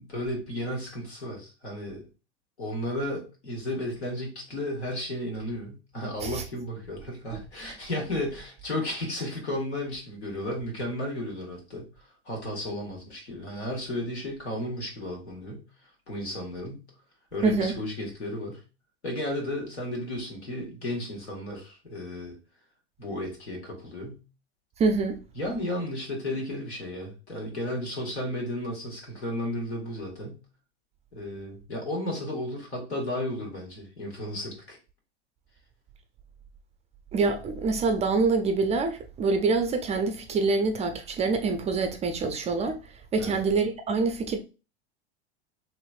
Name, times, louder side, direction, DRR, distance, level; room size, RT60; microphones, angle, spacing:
voice 1, 0.0-2.0 2.6-11.8 12.2-15.7 16.1-16.9 17.3-18.6 19.0-22.3 23.0-24.2 25.3-30.4 31.1-34.8 43.2-43.4, left 1 dB, 85° left, 1.6 m, -33 dB
voice 2, 17.4-17.7 24.8-25.2 37.1-42.8 43.1-44.4, right 4 dB, 20° right, 0.4 m, -25 dB
3.1 x 3.0 x 2.4 m
hypercardioid pair, 90°, 33 cm